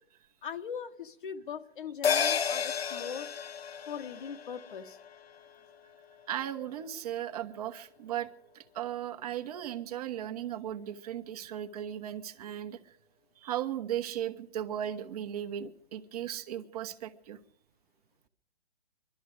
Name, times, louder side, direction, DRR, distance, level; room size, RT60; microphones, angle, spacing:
voice 1, 0.4-3.3 3.9-5.0, left 7 dB, 50° left, 9 dB, 1.4 m, -40 dB
sound 1, 2.0-6.8 7.1-7.2, left 7 dB, 70° left, 0.9 m, -33 dB
voice 2, 6.3-13.0 13.4-17.4, right 10 dB, 35° right, 8 dB, 1.3 m, -37 dB
22.5 x 13.0 x 5.0 m, 0.68 s
figure-of-eight pair, 130°, 32 cm